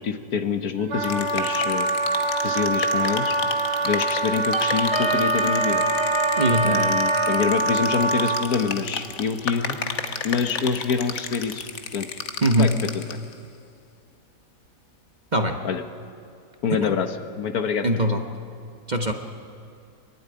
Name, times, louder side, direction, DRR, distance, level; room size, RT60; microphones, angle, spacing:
voice 1, 0.0-1.9 2.4-3.3 3.8-5.8 6.6-9.8 10.2-11.7 11.9-12.2 12.5-13.2 15.6-15.8 16.6-18.1, left 6 dB, 65° left, 8 dB, 1.5 m, -26 dB
Wind instrument woodwind instrument, 0.9-8.5, right 2 dB, 75° right, 1.9 m, -24 dB
sound 1, 1.0-13.3, left 6 dB, 50° left, 1.3 m, -33 dB
Wind instrument woodwind instrument 2, 4.5-7.5, right 2 dB, 50° right, 3.4 m, -26 dB
voice 2, 6.4-6.9 12.4-12.7 15.3-15.5 17.8-18.2 18.9-19.1, right 1 dB, 30° right, 4 dB, 1.0 m, -21 dB
26.0 x 12.0 x 9.9 m, 2.5 s
omnidirectional pair, 1.8 m